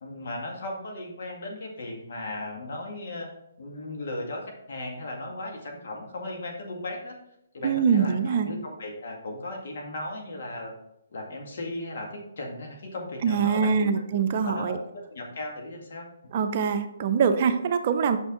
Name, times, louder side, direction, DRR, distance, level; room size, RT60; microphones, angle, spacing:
voice 1, 0.0-3.3 3.6-7.2 7.5-10.7 11.1-13.9 14.4-16.1, left 2 dB, 60° left, 0 dB, 2.0 m, -36 dB
voice 2, 7.6-8.5 13.2-14.8 16.3-18.2, right 6 dB, 45° right, 9 dB, 0.6 m, -24 dB
6.1 x 6.0 x 3.7 m, 0.79 s
hypercardioid pair, 145°, 0 cm